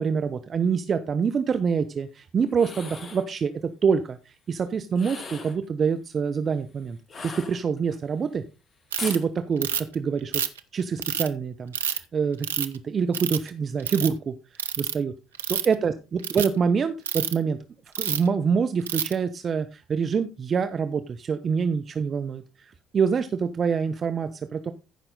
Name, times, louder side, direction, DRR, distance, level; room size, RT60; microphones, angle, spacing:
voice 1, 0.0-3.5 3.8-7.0 7.2-8.4 9.0-10.4 10.7-14.3 14.8-15.1 15.5-15.9 16.3-17.6 18.0-22.4 22.9-24.7, right 6 dB, 40° right, 9 dB, 0.9 m, -26 dB
sound 1, 2.5-3.3 4.9-5.6 7.1-8.0 9.0-9.3, left 4 dB, 35° left, 1.4 m, -38 dB
Ratchet pawl, 8.9-9.2 9.6-9.9 10.3-11.3 11.7-12.0 12.4-12.8 13.1-13.5 13.8-14.1 14.6-14.9 15.3-15.7 16.2-16.5 17.1-17.3 17.9-18.3 18.9-19.1, right 8 dB, 85° right, 0.7 m, -28 dB
14.5 x 5.9 x 4.0 m, 0.28 s
figure-of-eight pair, 55°, 0 cm